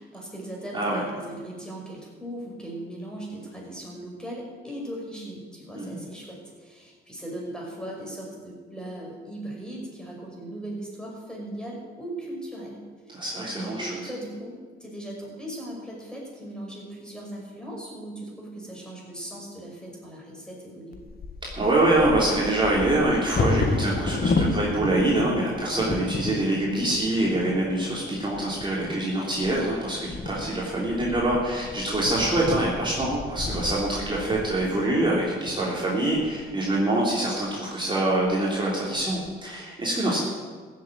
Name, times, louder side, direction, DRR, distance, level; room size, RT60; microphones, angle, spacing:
voice 1, 0.0-13.2 13.5-21.0, right 1 dB, 5° left, -2 dB, 5.7 m, -38 dB
voice 2, 13.1-13.9 21.5-40.2, right 1 dB, 25° right, -5 dB, 3.4 m, -25 dB
Bird vocalization bird call bird song / Wind / Thunder, 20.9-36.8 37.5-37.6 37.9-38.3 38.7-39.3, left 3 dB, 50° left, 1.7 m, -32 dB
15.0 x 7.7 x 8.9 m, 1.5 s
cardioid pair, 90°, 20 cm